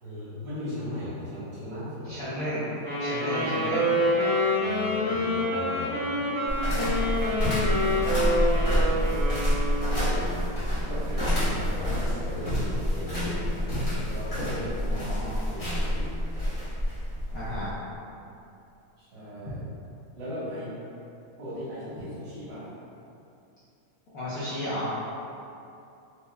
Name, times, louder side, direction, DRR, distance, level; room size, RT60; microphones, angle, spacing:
voice 1, 0.0-2.2 4.5-8.0 8.5-8.9 9.8-10.5 10.8-13.6 13.9-15.1 15.5-16.2 19.0-19.6 20.1-20.7 21.4-22.7, left 1 dB, 60° right, -13 dB, 2.1 m, -38 dB
voice 2, 2.0-2.7 3.0-4.0 14.8-15.4 17.3-17.7 24.1-25.0, equal, 65° left, -11 dB, 1.0 m, -33 dB
Wind instrument woodwind instrument, 2.8-10.3, left 1 dB, 40° right, 1.5 m, -27 dB
sound 1, 6.5-17.7, equal, 30° left, 0.6 m, -27 dB
4.4 x 2.8 x 2.2 m, 2.7 s
omnidirectional pair, 2.3 m